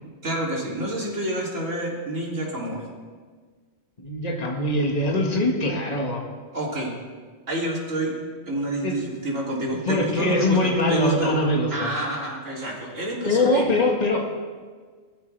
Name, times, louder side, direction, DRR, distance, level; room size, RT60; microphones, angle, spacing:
voice 1, 0.2-2.8 6.5-6.9 7.5-8.1 8.5-11.4 11.7-13.7, right 1 dB, 75° right, -4 dB, 3.7 m, -28 dB
voice 2, 4.0-6.2 8.8-9.0 9.9-11.9 13.3-14.2, left 1 dB, 30° left, 0 dB, 1.8 m, -22 dB
19.5 x 14.0 x 3.4 m, 1.6 s
omnidirectional pair, 1.3 m